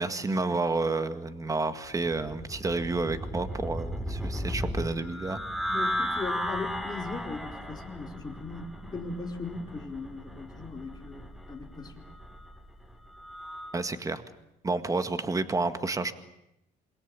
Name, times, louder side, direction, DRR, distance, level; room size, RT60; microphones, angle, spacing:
voice 1, 0.0-5.4 13.7-14.2 14.6-16.1, right 3 dB, 20° right, 10 dB, 1.9 m, -30 dB
sound 1, 1.9-13.8, equal, ahead, 2.7 m, -36 dB
voice 2, 5.7-12.1, left 3 dB, 25° left, 1 dB, 4.4 m, -38 dB
27.5 x 21.5 x 8.9 m, 0.85 s
cardioid pair, 110°, 17 cm